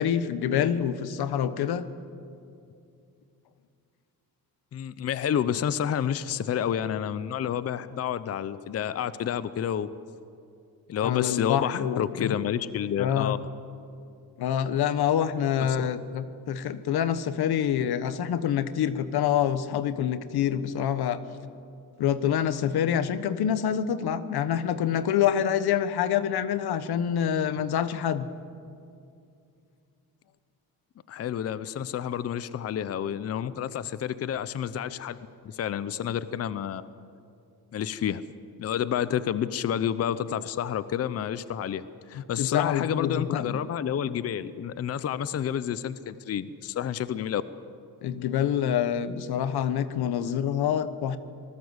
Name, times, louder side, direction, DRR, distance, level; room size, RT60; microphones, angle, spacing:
voice 1, 0.0-1.8 11.0-12.3 13.0-13.3 14.4-21.2 22.0-28.3 42.1-43.6 48.0-51.2, left 9 dB, 85° left, 13 dB, 1.2 m, -26 dB
voice 2, 4.7-9.9 10.9-13.4 15.8-15.9 31.1-35.2 35.4-36.8 37.7-38.2 38.6-47.4, left 9 dB, 40° left, 15 dB, 0.6 m, -29 dB
26.5 x 19.5 x 8.1 m, 2.5 s
wide cardioid pair, 165°, 37 cm